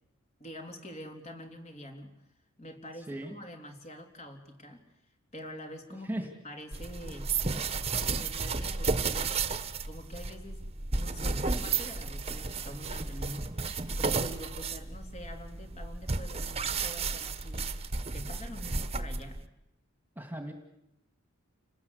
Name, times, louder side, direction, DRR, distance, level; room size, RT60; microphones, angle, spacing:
voice 1, 0.4-2.1 2.6-4.8 5.3-7.3 7.9-9.4 9.8-10.6 10.9-13.5 14.0-17.7 18.1-19.4, equal, 30° left, 4 dB, 3.5 m, -45 dB
sound 1, 6.7-19.5, right 4 dB, 30° right, 1.3 m, -33 dB
voice 2, 20.2-20.5, right 1 dB, 10° right, 6 dB, 2.3 m, -36 dB
29.5 x 19.5 x 8.3 m, 0.82 s
head